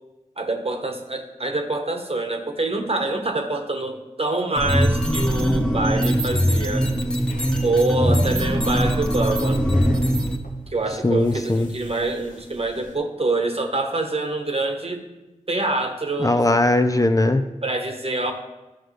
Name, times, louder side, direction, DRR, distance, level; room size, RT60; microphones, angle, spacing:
voice 1, 0.4-6.9 7.6-9.6 10.7-15.0 15.5-16.4 17.6-18.3, right 2 dB, 50° right, 4 dB, 1.2 m, -25 dB
sound 1, 4.5-10.4, equal, 5° left, 1.1 m, -21 dB
sound 2, 6.9-12.9, left 1 dB, 85° left, 1.0 m, -38 dB
voice 2, 11.0-11.7 16.2-17.4, left 2 dB, 25° left, 7 dB, 0.5 m, -19 dB
11.5 x 6.2 x 3.3 m, 1.0 s
cardioid pair, 45°, 13 cm